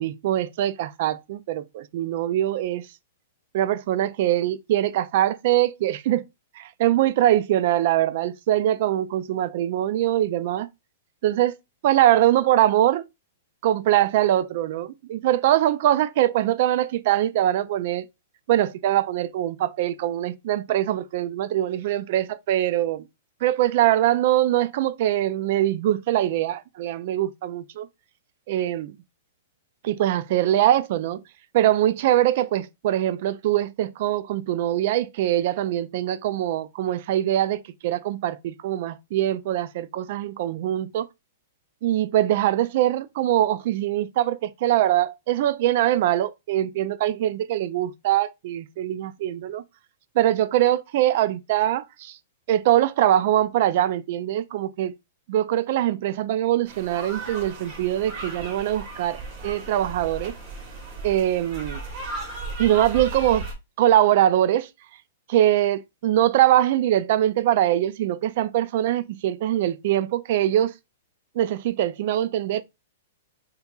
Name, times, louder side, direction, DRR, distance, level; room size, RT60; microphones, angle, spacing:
voice 1, 0.0-2.9 3.5-6.3 6.6-10.7 11.2-11.6 11.8-13.1 13.6-18.0 18.5-23.1 23.4-27.9 28.5-29.0 29.8-31.2 31.5-41.1 41.8-49.6 50.2-52.2 52.5-54.9 55.3-60.3 61.0-61.8 62.6-63.5 63.8-64.7 65.3-70.7 71.4-72.6, right 12 dB, 50° right, 0.3 m, -22 dB
sound 1, 56.7-63.5, right 2 dB, 30° right, 1.4 m, -36 dB
5.2 x 2.8 x 2.4 m
hypercardioid pair, 160°, 0 cm